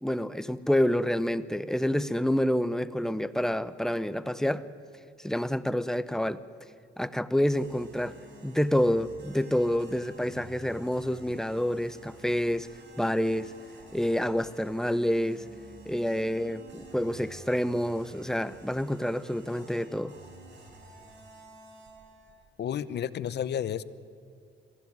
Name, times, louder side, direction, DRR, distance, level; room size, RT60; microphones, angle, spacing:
voice 1, 0.0-4.6 5.2-6.4 7.0-8.1 8.4-12.7 13.0-13.5 13.9-15.4 15.9-20.1, equal, 5° left, 14 dB, 0.7 m, -28 dB
sound 1, 7.5-22.3, right 3 dB, 60° right, 7.3 m, -51 dB
voice 2, 22.6-23.8, left 9 dB, 60° left, 16 dB, 0.8 m, -31 dB
22.5 x 15.5 x 9.4 m, 2.4 s
cardioid pair, 90°, 20 cm